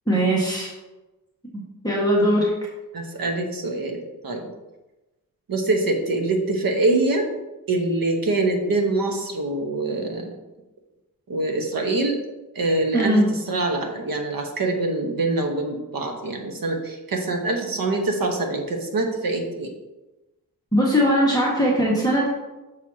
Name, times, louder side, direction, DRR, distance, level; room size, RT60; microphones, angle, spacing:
voice 1, 0.1-0.7 1.8-2.5 12.9-13.2 20.7-22.3, equal, 10° left, -6 dB, 1.6 m, -19 dB
voice 2, 2.9-4.5 5.5-7.3 7.7-10.3 11.3-12.2 12.5-19.7, right 2 dB, 70° right, 2 dB, 1.2 m, -24 dB
6.8 x 6.3 x 2.9 m, 1.1 s
wide cardioid pair, 90°, 36 cm